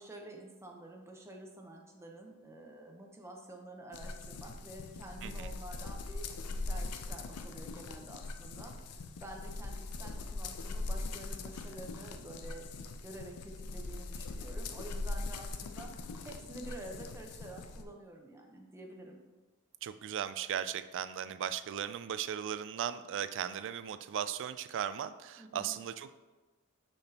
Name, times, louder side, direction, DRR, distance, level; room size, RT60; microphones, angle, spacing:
voice 1, 0.0-8.8 9.2-12.7 13.0-16.0 16.2-19.2 25.4-25.7, right 1 dB, 10° right, 1 dB, 0.8 m, -49 dB
sound 1, 3.9-17.8, left 3 dB, 85° left, 0.5 m, -41 dB
voice 2, 5.2-5.5 19.8-26.1, right 9 dB, 55° right, 12 dB, 0.3 m, -37 dB
6.6 x 5.9 x 2.9 m, 1.2 s
head